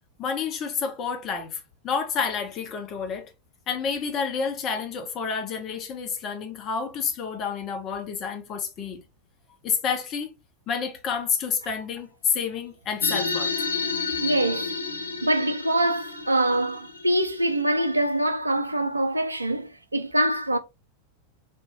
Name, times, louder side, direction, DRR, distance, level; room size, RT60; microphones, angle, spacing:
voice 1, 0.2-3.3 3.7-9.0 9.6-10.3 10.7-13.5, left 6 dB, 30° left, 0.8 m, -29 dB
sound 1, 13.0-17.9, left 4 dB, 85° left, 0.6 m, -31 dB
voice 2, 14.2-14.8 15.2-20.6, right 1 dB, 80° right, 0.4 m, -24 dB
3.5 x 2.2 x 2.9 m
figure-of-eight pair, 90°, 0 cm